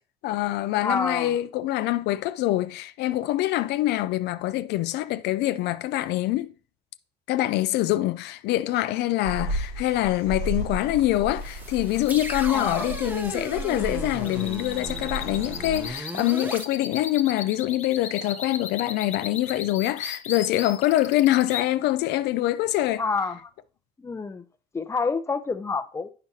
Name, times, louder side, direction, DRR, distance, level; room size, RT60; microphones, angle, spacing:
voice 1, 0.2-6.5 7.3-23.0, left 15 dB, 80° left, 0.4 m, -25 dB
voice 2, 0.8-1.4 12.5-12.9 23.0-23.5 24.0-24.4 24.7-26.1, left 4 dB, 15° left, 0.5 m, -28 dB
sound 1, 9.2-16.0, right 1 dB, 90° right, 3.8 m, -34 dB
sound 2, 11.4-16.6, right 1 dB, 10° right, 0.8 m, -36 dB
sound 3, 11.9-21.6, left 7 dB, 45° left, 1.1 m, -37 dB
8.3 x 5.9 x 2.8 m
cardioid pair, 110°, 17 cm